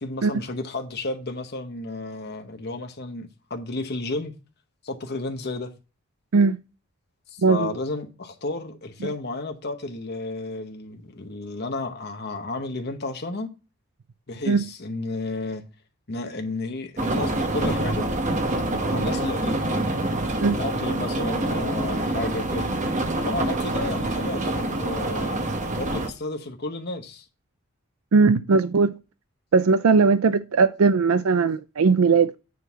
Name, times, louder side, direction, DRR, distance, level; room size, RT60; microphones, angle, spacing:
voice 1, 0.0-4.3 4.8-5.7 7.3-13.5 14.3-15.6 16.1-18.1 18.9-19.7 20.6-22.7 23.2-27.3, left 2 dB, 50° left, 0.9 m, -32 dB
voice 2, 7.4-7.8 9.0-9.1 14.5-14.6 20.4-20.6 28.1-28.9 29.5-32.4, right 4 dB, 85° right, 0.5 m, -19 dB
sound 1, 17.0-26.1, right 1 dB, 35° right, 1.1 m, -26 dB
9.5 x 3.9 x 5.6 m
head